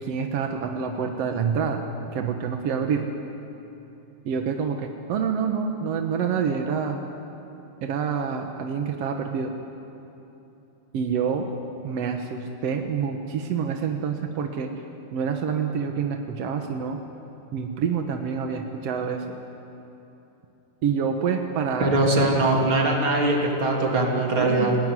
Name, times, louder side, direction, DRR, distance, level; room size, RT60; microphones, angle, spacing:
voice 1, 0.0-1.8 2.1-3.1 4.2-7.0 7.8-9.5 10.9-11.5 11.8-14.7 15.1-17.0 17.5-19.2 20.8-21.9 24.3-24.7, right 6 dB, 70° right, 4 dB, 1.5 m, -27 dB
voice 2, 21.8-24.8, right 2 dB, 35° right, 0 dB, 3.4 m, -21 dB
28.5 x 18.5 x 9.7 m, 3.0 s
omnidirectional pair, 4.5 m